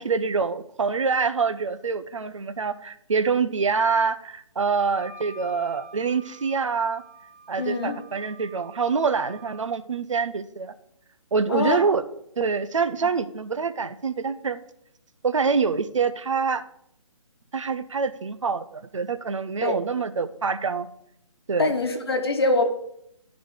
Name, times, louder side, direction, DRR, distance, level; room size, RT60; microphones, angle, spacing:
voice 1, 0.0-7.0 7.5-10.7 11.3-12.0 12.4-14.6 15.2-16.6 17.5-20.9 21.5-21.7, right 5 dB, 60° right, 13 dB, 0.6 m, -25 dB
Wind instrument woodwind instrument, 4.8-9.7, right 2 dB, 25° right, 0.8 m, -48 dB
voice 2, 7.6-8.0 11.5-11.8 19.6-19.8 21.6-22.6, left 3 dB, 45° left, 5 dB, 1.1 m, -23 dB
12.0 x 4.1 x 4.7 m, 0.75 s
hypercardioid pair, 180°, 18 cm